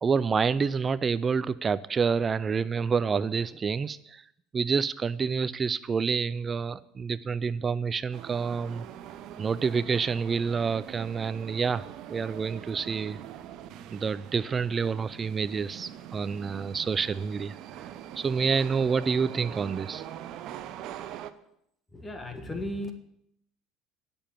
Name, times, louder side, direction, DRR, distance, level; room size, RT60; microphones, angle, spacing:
voice 1, 0.0-4.2 4.5-8.8 9.4-13.2 13.9-17.6 18.2-20.1, right 5 dB, 30° right, 17 dB, 0.4 m, -28 dB
sound 1, 8.1-21.3, right 11 dB, 60° right, 0.7 m, -43 dB
voice 2, 21.9-22.9, left 1 dB, 20° left, 6 dB, 1.4 m, -35 dB
10.5 x 7.0 x 7.3 m, 0.76 s
supercardioid pair, 90°, 0 cm